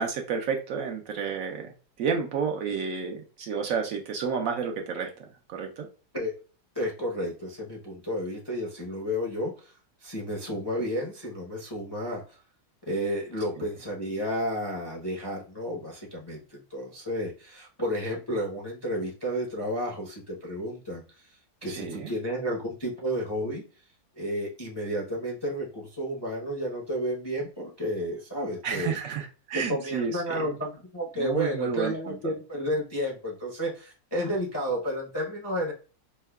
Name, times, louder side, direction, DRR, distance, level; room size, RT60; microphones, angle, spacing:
voice 1, 0.0-5.9 21.7-22.1 28.6-30.5 31.2-32.2, right 6 dB, 70° right, 3 dB, 0.9 m, -31 dB
voice 2, 6.7-9.7 10.0-12.2 12.9-21.0 21.6-23.6 24.2-29.0 29.5-35.7, equal, 25° left, -3 dB, 0.5 m, -31 dB
5.4 x 2.1 x 2.2 m, 0.36 s
omnidirectional pair, 1.7 m